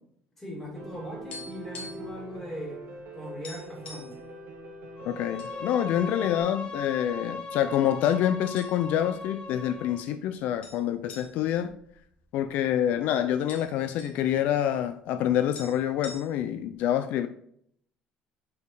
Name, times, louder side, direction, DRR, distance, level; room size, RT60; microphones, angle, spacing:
voice 1, 0.4-2.8 3.1-4.1, equal, 10° left, 2.6 m, -39 dB
Piano, 0.8-6.4, right 1 dB, 60° right, 1.2 m, -43 dB
sound 1, 1.3-2.2 2.4-2.6 3.0-3.1 3.4-4.2 4.9-5.5 5.9-6.0 6.7-7.4 8.1-8.2 8.6-9.1 9.4-9.5 10.6-12.7 13.0-13.1 13.3-14.2 15.2-15.3 15.5-16.6, left 3 dB, 45° left, 1.5 m, -45 dB
Bowed string instrument, 5.0-10.1, left 3 dB, 30° left, 0.9 m, -39 dB
voice 2, 5.1-11.7 12.3-17.3, left 10 dB, 65° left, 0.3 m, -27 dB
5.2 x 4.5 x 4.7 m
cardioid pair, 145°, 3 cm